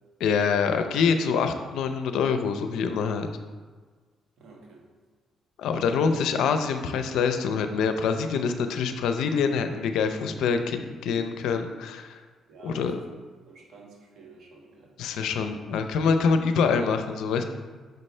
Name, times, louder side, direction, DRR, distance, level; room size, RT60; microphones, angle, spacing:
voice 1, 0.2-3.3 5.6-12.2 12.6-13.0 15.0-17.4, left 5 dB, 85° left, 7 dB, 0.5 m, -25 dB
voice 2, 4.4-4.8 5.8-6.0 12.5-13.1 13.5-14.9, right 4 dB, 70° right, -1 dB, 1.6 m, -49 dB
6.6 x 5.3 x 3.2 m, 1.4 s
cardioid pair, 90°, 0 cm